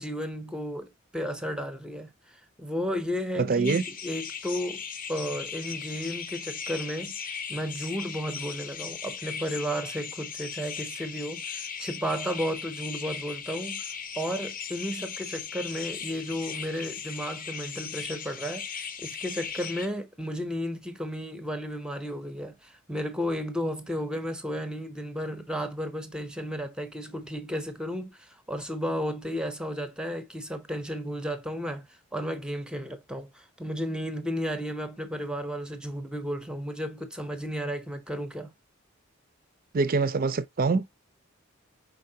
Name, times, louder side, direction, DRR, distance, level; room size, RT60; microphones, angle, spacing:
voice 1, 0.0-7.1 7.5-13.8 14.2-38.5, equal, 5° right, 0.7 m, -33 dB
voice 2, 3.4-3.8 39.7-40.9, right 4 dB, 45° right, 0.5 m, -25 dB
sound 1, 3.6-19.9, left 6 dB, 40° left, 0.6 m, -38 dB
4.7 x 4.0 x 2.7 m
head